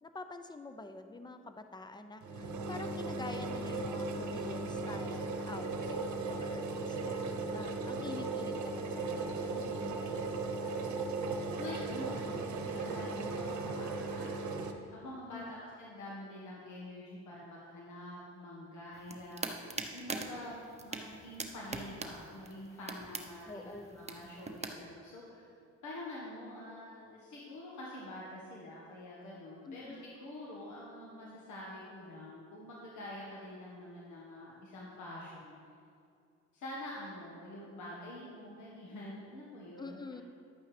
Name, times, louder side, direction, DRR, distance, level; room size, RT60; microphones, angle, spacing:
voice 1, 0.0-9.8 15.3-15.6 23.5-24.1 29.6-30.2 39.8-40.2, left 2 dB, 15° left, 8 dB, 0.6 m, -47 dB
sound 1, 2.2-14.7, right 3 dB, 70° right, 0.9 m, -37 dB
voice 2, 9.5-10.0 11.6-14.3 14.9-19.5 19.9-23.6 23.9-25.5 25.8-35.6 36.5-40.2, left 1 dB, 75° left, -4 dB, 1.5 m, -46 dB
sound 2, 18.9-24.7, right 3 dB, 20° right, 0.9 m, -42 dB
11.0 x 8.8 x 3.3 m, 2.4 s
cardioid pair, 90°, 30 cm